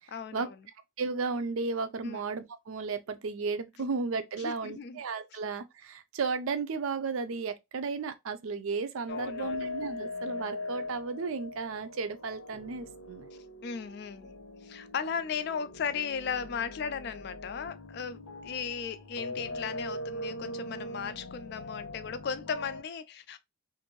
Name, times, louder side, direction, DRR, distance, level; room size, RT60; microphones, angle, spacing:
voice 1, 0.1-0.6 2.0-2.2 3.8-3.9 4.4-5.0 9.1-9.7 13.6-14.3 14.6-23.4, left 6 dB, 50° left, 0.3 m, -36 dB
voice 2, 1.0-13.3, right 4 dB, 75° right, 0.5 m, -34 dB
sound 1, 9.1-22.8, left 2 dB, 90° left, 0.8 m, -41 dB
2.6 x 2.5 x 2.9 m
head